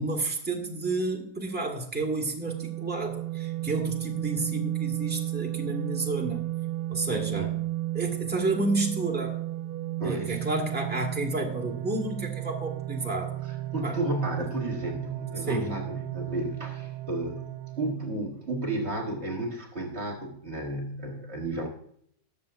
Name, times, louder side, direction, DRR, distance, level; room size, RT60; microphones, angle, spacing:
voice 1, 0.0-6.4 6.9-7.6 7.9-9.4 10.0-13.3 13.8-14.0 15.5-15.8, right 2 dB, 5° right, 0 dB, 1.7 m, -30 dB
sound 1, 2.5-17.9, right 15 dB, 80° right, 1.2 m, -33 dB
voice 2, 7.1-7.5 10.0-10.5 13.4-21.7, right 1 dB, 45° right, 2 dB, 1.6 m, -33 dB
20.0 x 6.8 x 2.5 m, 0.67 s
omnidirectional pair, 1.6 m